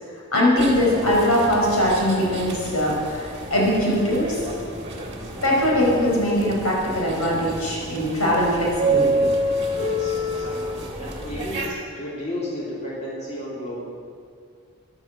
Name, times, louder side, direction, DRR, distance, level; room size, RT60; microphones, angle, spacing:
voice 1, 0.3-4.4 5.4-9.3, left 1 dB, 85° left, -3 dB, 4.8 m, -21 dB
sound 1, 0.6-11.7, right 1 dB, 30° right, 2.1 m, -29 dB
voice 2, 9.7-13.8, left 1 dB, 30° left, -6 dB, 3.3 m, -33 dB
13.0 x 11.0 x 7.5 m, 2.2 s
head